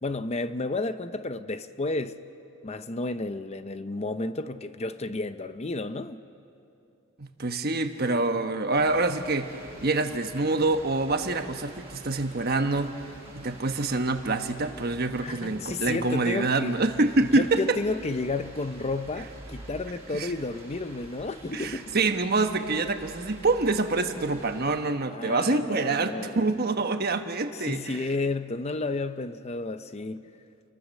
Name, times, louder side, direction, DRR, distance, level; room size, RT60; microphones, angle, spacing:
voice 1, 0.0-2.2 2.6-6.2 15.2-16.8 17.2-21.9 25.1-26.4 27.5-30.3, left 2 dB, 30° left, 0.6 m, -32 dB
voice 2, 7.2-12.9 13.3-17.8 20.1-20.3 21.5-28.0, right 3 dB, 45° right, 1.2 m, -26 dB
sound 1, 8.7-24.8, right 1 dB, 30° right, 7.7 m, -47 dB
29.5 x 22.5 x 6.5 m
head